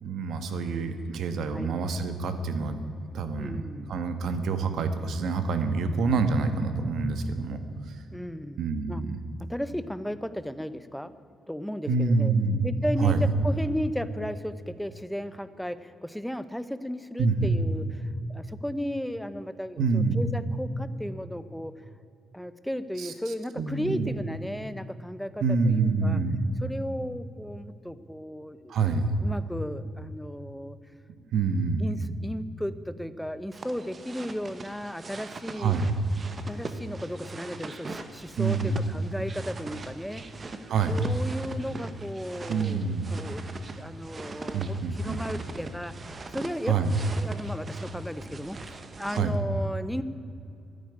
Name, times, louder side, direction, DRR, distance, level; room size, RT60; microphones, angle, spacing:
voice 1, 0.0-2.8 3.1-3.6 3.9-7.6 7.9-8.0 8.6-9.2 11.9-12.6 13.0-13.3 17.2-17.5 19.8-20.2 23.0-23.1 23.6-24.1 25.4-26.4 28.7-29.1 31.3-31.8 35.5-35.9 38.4-38.9 40.7-41.0 42.5-43.1 44.5-45.2 46.6-46.9 49.1-49.4, right 4 dB, 60° right, 9 dB, 1.5 m, -26 dB
voice 2, 3.4-3.9 8.1-9.0 9.4-11.2 11.5-12.3 12.6-21.7 22.3-26.2 26.6-28.8 29.2-30.8 31.8-35.7 36.4-40.6 40.9-45.9 46.3-46.7 47.2-50.0, equal, ahead, 13 dB, 0.6 m, -35 dB
sound 1, 33.5-49.2, right 3 dB, 25° right, 1.0 m, -41 dB
13.5 x 11.0 x 9.8 m, 2.6 s
cardioid pair, 175°, 0 cm